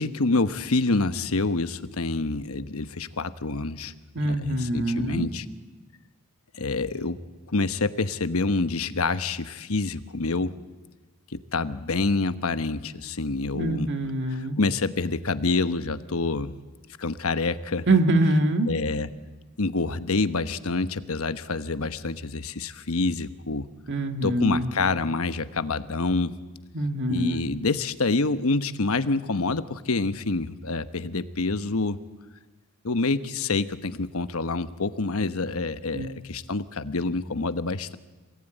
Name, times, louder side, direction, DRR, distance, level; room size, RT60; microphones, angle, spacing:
voice 1, 0.0-3.9 4.2-5.4 6.5-7.2 7.5-10.5 11.3-13.9 14.3-16.5 17.0-17.9 18.7-19.1 19.6-23.7 24.2-26.3 27.1-32.0 32.8-38.0, left 3 dB, 70° left, 11 dB, 1.1 m, -27 dB
voice 2, 4.2-5.3 13.5-14.6 17.9-18.7 23.9-24.7 26.7-27.6 35.9-36.1, right 1 dB, 55° right, 6 dB, 2.0 m, -24 dB
26.5 x 19.0 x 9.2 m, 1.2 s
head